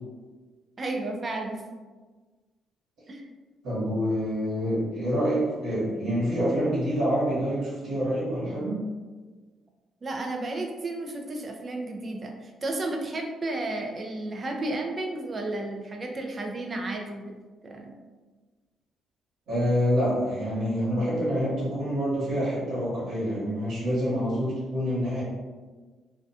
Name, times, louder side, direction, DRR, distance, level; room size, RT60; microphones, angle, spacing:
voice 1, 0.8-1.6 3.1-3.3 10.0-17.4 17.6-17.9, right 2 dB, 35° right, 2 dB, 0.4 m, -32 dB
voice 2, 3.6-8.8 19.5-25.2, equal, 75° right, -10 dB, 1.2 m, -27 dB
2.4 x 2.2 x 2.6 m, 1.4 s
cardioid pair, 90°, 0 cm